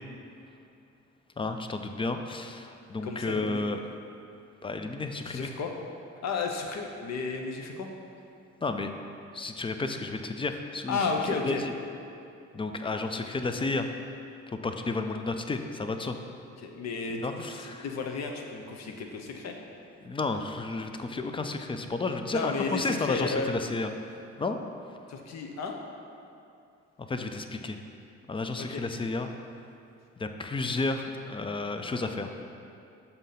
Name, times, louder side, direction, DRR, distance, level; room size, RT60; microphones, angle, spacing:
voice 1, 1.4-3.8 4.6-5.5 8.6-8.9 9.3-11.0 11.4-11.7 12.5-13.9 14.5-16.2 17.2-17.9 20.0-24.6 27.0-27.8 28.3-29.3 30.2-32.4, left 3 dB, 20° left, 6 dB, 0.3 m, -32 dB
voice 2, 3.0-3.6 5.2-5.7 6.2-7.9 10.9-11.6 16.6-19.6 22.3-23.5 25.1-25.8 28.6-28.8, left 4 dB, 60° left, 3 dB, 0.7 m, -33 dB
6.8 x 2.7 x 5.7 m, 2.6 s
cardioid pair, 90°, 30 cm